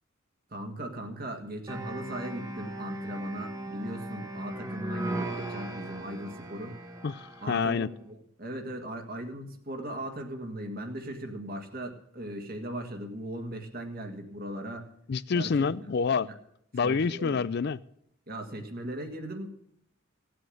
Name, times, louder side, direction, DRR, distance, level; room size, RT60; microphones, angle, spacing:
voice 1, 0.5-6.8 7.4-14.9 15.3-15.7 16.8-17.4 18.3-19.5, right 1 dB, 45° right, 1.9 m, -38 dB
sound 1, 1.7-7.6, right 1 dB, 15° right, 1.2 m, -38 dB
voice 2, 7.0-7.9 15.1-16.3 16.7-17.8, left 5 dB, 55° left, 0.4 m, -27 dB
16.5 x 7.8 x 6.4 m
head